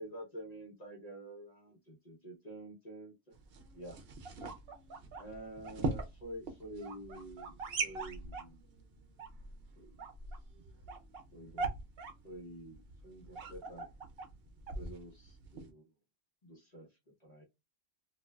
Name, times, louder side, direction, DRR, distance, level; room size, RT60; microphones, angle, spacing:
voice 1, 0.0-3.1 3.7-4.0 5.1-8.7 9.8-9.9 11.3-11.7 12.2-13.8 14.7-15.9 16.4-16.9 17.2-17.4, right 1 dB, 40° left, -1 dB, 1.0 m, -48 dB
sound 1, 3.3-15.7, right 3 dB, 65° right, 0.9 m, -42 dB
3.2 x 2.5 x 2.3 m, 0.22 s
omnidirectional pair, 1.1 m